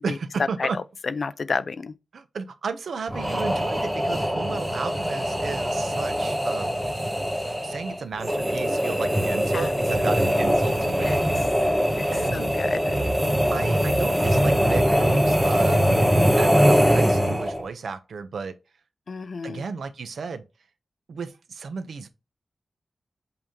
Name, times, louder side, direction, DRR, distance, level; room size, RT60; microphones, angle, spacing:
voice 1, 0.0-0.8 2.1-6.7 7.6-11.2 12.1-12.5 13.5-15.8 16.4-18.6 19.4-20.4 21.1-22.1, right 5 dB, 80° right, 0.9 m, -33 dB
voice 2, 0.6-1.9 9.5-9.7 10.0-10.4 10.9-11.3 12.3-13.0 19.1-19.6, left 4 dB, 50° left, 0.5 m, -31 dB
sound 1, 3.1-17.7, equal, 10° right, 1.2 m, -22 dB
7.9 x 3.5 x 3.7 m
wide cardioid pair, 155°, 0 cm